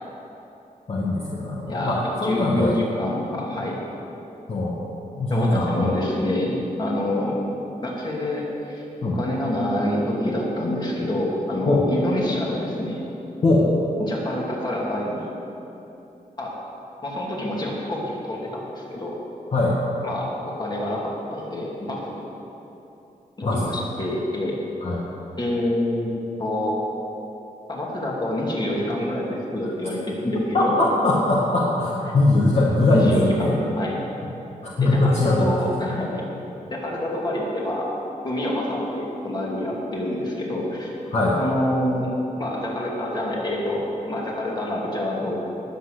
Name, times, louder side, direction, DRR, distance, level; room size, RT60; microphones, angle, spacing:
voice 1, 0.9-2.8 4.5-4.8 5.2-6.0 9.0-9.2 11.6-11.8 13.4-13.7 19.5-19.8 23.4-23.7 24.8-25.0 30.5-33.6 34.6-35.5 41.1-41.4, left 2 dB, 45° left, -5 dB, 1.8 m, -21 dB
voice 2, 1.6-3.8 5.3-7.4 7.8-13.0 14.0-15.3 16.4-16.5 17.0-19.2 20.0-22.2 23.4-24.6 25.4-26.1 26.4-26.8 27.7-30.8 32.9-34.0 34.8-36.2 36.7-37.9 38.2-40.9 41.4-42.1 42.4-45.4, left 1 dB, 30° left, -3 dB, 2.8 m, -27 dB
20.0 x 8.4 x 6.7 m, 3.0 s
wide cardioid pair, 170°, 15 cm